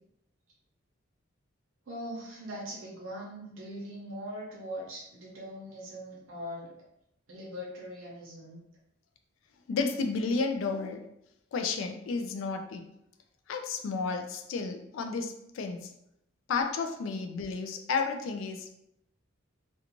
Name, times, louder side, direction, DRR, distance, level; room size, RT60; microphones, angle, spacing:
voice 1, 1.9-6.7 7.3-8.6, equal, 80° right, -4 dB, 0.7 m, -41 dB
voice 2, 9.7-11.0 11.5-12.8 13.5-15.9 16.5-18.7, left 4 dB, 75° left, 4 dB, 0.3 m, -32 dB
2.5 x 2.2 x 2.9 m, 0.78 s
head